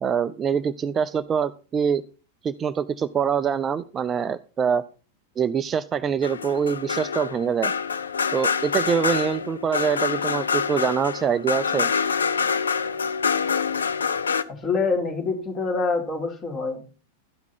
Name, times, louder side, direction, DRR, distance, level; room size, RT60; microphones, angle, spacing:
voice 1, 0.0-2.0 2.4-4.8 5.4-7.7 8.3-11.9, right 7 dB, 25° right, 13 dB, 0.5 m, -24 dB
sound 1, 6.2-14.4, left 6 dB, 75° left, 0.6 m, -26 dB
voice 2, 14.5-16.8, left 4 dB, 25° left, 3 dB, 3.2 m, -26 dB
12.5 x 5.9 x 5.7 m, 0.35 s
figure-of-eight pair, 90°, 0 cm